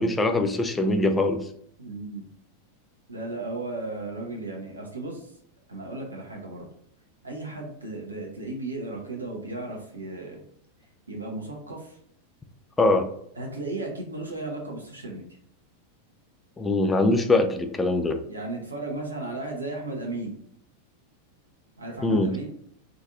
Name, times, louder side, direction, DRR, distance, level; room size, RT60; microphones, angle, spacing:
voice 1, 0.0-1.5 12.8-13.1 16.6-18.2 22.0-22.3, left 2 dB, 10° left, 6 dB, 0.4 m, -22 dB
voice 2, 1.8-2.2 3.1-5.3 5.7-6.7 7.2-10.4 11.1-12.0 13.4-15.2 18.3-20.3 21.8-22.5, right 2 dB, 80° right, 0 dB, 0.8 m, -35 dB
3.8 x 2.6 x 3.6 m, 0.68 s
figure-of-eight pair, 90°, 0 cm